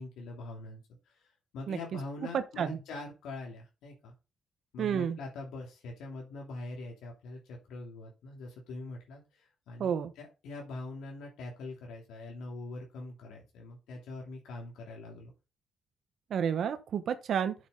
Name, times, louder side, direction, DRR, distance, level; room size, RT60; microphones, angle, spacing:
voice 1, 0.0-4.1 4.7-15.3, left 2 dB, 85° left, 2.9 m, -43 dB
voice 2, 2.3-2.8 4.8-5.2 9.8-10.1 16.3-17.5, right 8 dB, 65° right, 1.0 m, -30 dB
8.0 x 7.1 x 3.9 m
cardioid pair, 90°, 0 cm